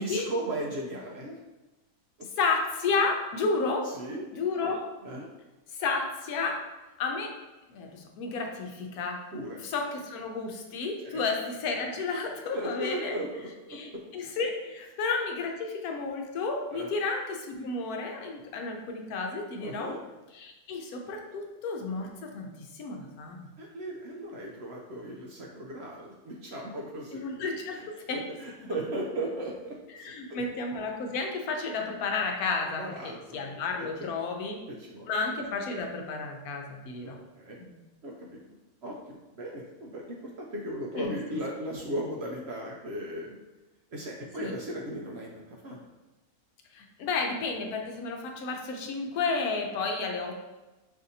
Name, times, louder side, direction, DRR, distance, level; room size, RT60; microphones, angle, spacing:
voice 1, 0.0-1.4 3.8-4.2 5.0-5.3 9.3-9.6 11.0-11.2 12.5-14.0 16.7-16.9 19.6-20.0 23.6-27.2 27.7-30.4 32.8-33.4 33.8-34.1 34.3-35.1 37.0-37.7 38.0-38.6 38.8-43.3 43.9-45.9, right 1 dB, 65° right, -2 dB, 0.6 m, -37 dB
voice 2, 2.4-3.9 4.3-4.8 5.8-6.6 7.0-7.3 7.7-9.2 9.6-13.2 13.7-19.9 20.4-22.5 22.7-23.5 27.1-28.2 28.6-28.8 30.0-32.8 33.3-34.6 35.1-37.2 37.6-37.7 40.9-41.1 44.4-44.5 46.7-50.5, left 4 dB, 80° left, 2 dB, 1.1 m, -32 dB
5.6 x 2.6 x 2.7 m, 1.1 s
omnidirectional pair, 1.6 m